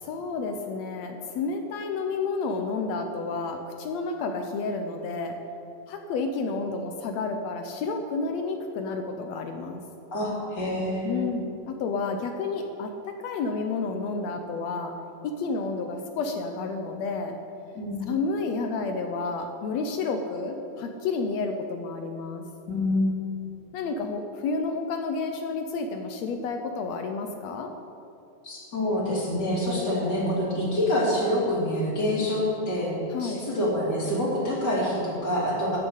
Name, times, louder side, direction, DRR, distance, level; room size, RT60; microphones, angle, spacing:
voice 1, 0.0-5.3 5.9-9.8 11.0-14.9 15.2-17.3 18.0-22.4 23.7-27.7 33.1-33.5, left 4 dB, 75° left, 5 dB, 1.6 m, -30 dB
voice 2, 10.1-11.2 17.7-18.0 22.7-23.1 28.4-32.9 33.2-35.8, left 1 dB, 30° left, -5 dB, 3.2 m, -26 dB
12.0 x 6.9 x 8.0 m, 2.7 s
omnidirectional pair, 3.8 m